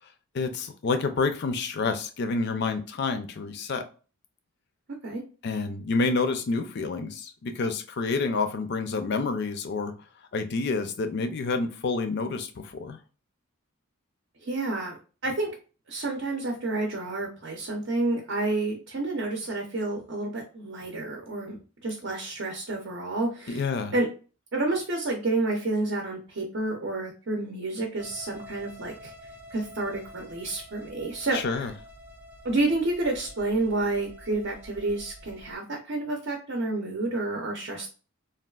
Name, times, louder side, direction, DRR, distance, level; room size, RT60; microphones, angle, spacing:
voice 1, 0.3-3.9 5.4-9.9 10.3-13.0 23.5-23.9 31.3-31.7, left 4 dB, 50° left, 8 dB, 0.4 m, -28 dB
voice 2, 14.4-15.0 15.2-15.5 15.9-21.6 21.8-23.7 23.9-24.1 24.5-29.1 29.5-31.6 32.4-37.9, right 2 dB, 55° right, 1 dB, 0.6 m, -29 dB
sound 1, 28.0-35.5, left 1 dB, 5° right, 0.4 m, -48 dB
3.5 x 2.3 x 2.3 m, 0.36 s
head